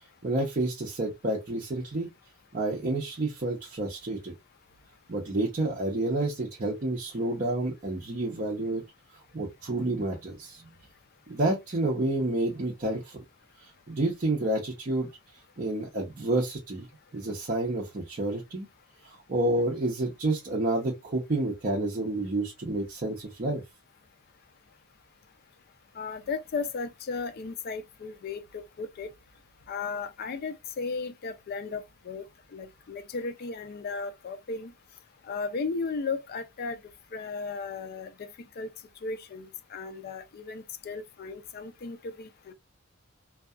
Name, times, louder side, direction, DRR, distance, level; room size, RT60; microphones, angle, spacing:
voice 1, 0.2-2.1 2.5-4.3 5.1-8.8 9.3-10.6 11.3-13.2 13.6-15.1 15.6-16.9 17.1-18.7 19.0-23.6, right 2 dB, 40° right, 0.6 m, -29 dB
voice 2, 26.0-28.4 28.8-29.1 29.7-32.2 32.5-34.7 35.3-36.8 37.1-38.3 38.6-38.7 39.0-42.5, left 4 dB, 45° left, 0.4 m, -35 dB
2.7 x 2.2 x 2.3 m
head